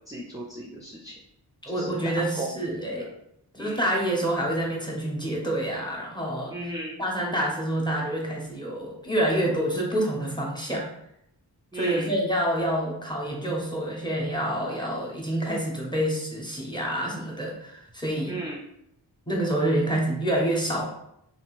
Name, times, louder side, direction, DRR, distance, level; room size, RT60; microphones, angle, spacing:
voice 1, 0.1-1.1 1.7-1.9 2.3-3.1 3.6-3.9 6.5-7.0 11.7-12.1 18.3-18.6, right 1 dB, 10° right, -4 dB, 0.4 m, -36 dB
voice 2, 1.6-3.1 3.5-6.7 7.0-10.9 11.7-18.4 19.3-20.9, right 1 dB, 10° left, -2 dB, 0.8 m, -27 dB
2.8 x 2.5 x 3.0 m, 0.77 s
wide cardioid pair, 85°, 43 cm